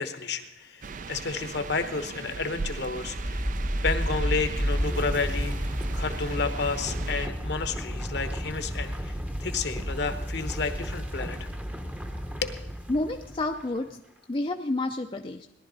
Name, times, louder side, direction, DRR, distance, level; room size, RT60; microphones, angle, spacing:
voice 1, 0.0-3.4 3.8-9.2 9.4-11.5 12.4-12.6, left 4 dB, 60° left, 8 dB, 1.0 m, -31 dB
sound 1, 0.8-7.3, right 4 dB, 45° right, 0.4 m, -39 dB
sound 2, 2.9-13.7, equal, 10° right, 0.8 m, -32 dB
voice 2, 12.9-14.0 14.3-15.5, left 2 dB, 30° left, 4 dB, 0.5 m, -30 dB
18.0 x 11.5 x 4.0 m, 0.82 s
head